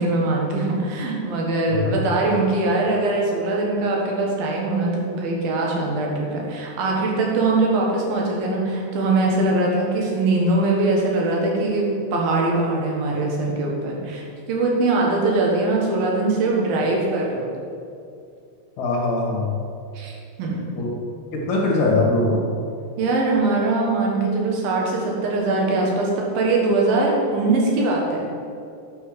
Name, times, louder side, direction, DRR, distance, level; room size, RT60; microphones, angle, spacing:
voice 1, 0.0-17.5 19.9-20.7 23.0-28.3, right 2 dB, 65° right, -2 dB, 3.1 m, -22 dB
voice 2, 18.8-19.6 20.7-20.9 21.3-22.4, left 2 dB, 55° left, -3 dB, 2.6 m, -21 dB
9.3 x 5.6 x 6.6 m, 2.5 s
omnidirectional pair, 4.9 m